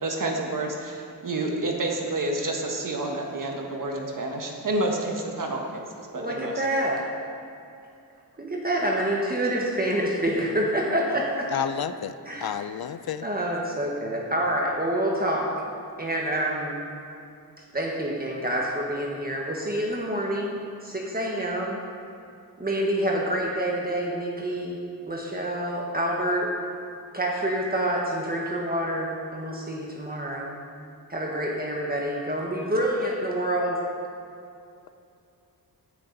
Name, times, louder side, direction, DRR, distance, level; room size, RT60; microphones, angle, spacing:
voice 1, 0.0-5.6 6.0-6.5 11.5-11.6, right 2 dB, 50° right, 1 dB, 1.5 m, -29 dB
voice 2, 6.1-7.1 8.4-11.5 12.3-12.7 13.2-15.5 16.0-16.8 17.7-21.8 22.6-26.5 27.1-30.5 31.1-33.9, right 1 dB, 20° right, -2 dB, 1.4 m, -27 dB
voice 3, 11.5-12.2 12.4-13.3, left 9 dB, 65° left, 12 dB, 0.6 m, -30 dB
17.0 x 9.7 x 4.0 m, 2.5 s
wide cardioid pair, 150°, 40 cm